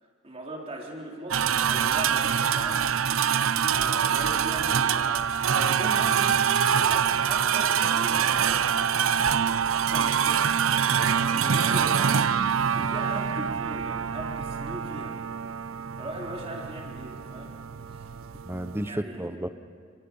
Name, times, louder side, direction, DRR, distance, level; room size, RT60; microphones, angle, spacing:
voice 1, 0.0-2.8 3.7-6.2 6.7-8.8 9.7-10.4 10.9-15.2 16.0-17.5 17.9-18.1 18.9-19.2, right 1 dB, 30° right, -1 dB, 4.1 m, -39 dB
sound 1, 1.3-18.9, right 7 dB, 85° right, 0.6 m, -25 dB
voice 2, 18.4-19.5, right 1 dB, 10° right, 11 dB, 0.8 m, -33 dB
30.0 x 24.5 x 5.5 m, 2.1 s
head